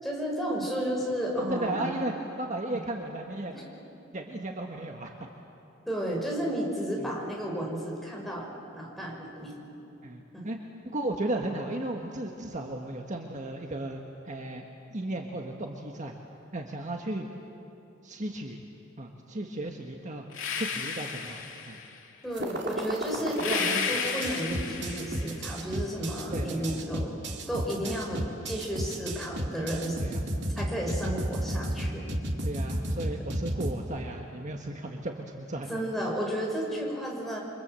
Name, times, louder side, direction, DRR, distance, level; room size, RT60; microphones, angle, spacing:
voice 1, 0.0-1.9 2.7-2.8 3.5-3.7 5.9-8.4 8.7-9.5 10.3-10.4 22.2-27.1 27.5-30.0 30.6-32.1 32.9-33.1 35.7-37.4, equal, ahead, -2 dB, 5.6 m, -32 dB
voice 2, 1.5-3.5 4.1-5.2 7.0-7.1 10.0-14.0 14.3-14.6 14.9-16.1 16.5-17.3 18.0-18.6 19.0-20.2 20.5-21.8 26.3-26.8 27.8-28.0 30.0-30.2 32.4-35.7, right 1 dB, 40° right, 2 dB, 1.6 m, -35 dB
sound 1, 20.3-22.0 23.3-25.4, left 6 dB, 85° left, 2.7 m, -33 dB
sound 2, 22.3-23.6 24.1-33.7, right 1 dB, 60° right, 2.7 m, -32 dB
28.5 x 25.0 x 7.7 m, 3.0 s
head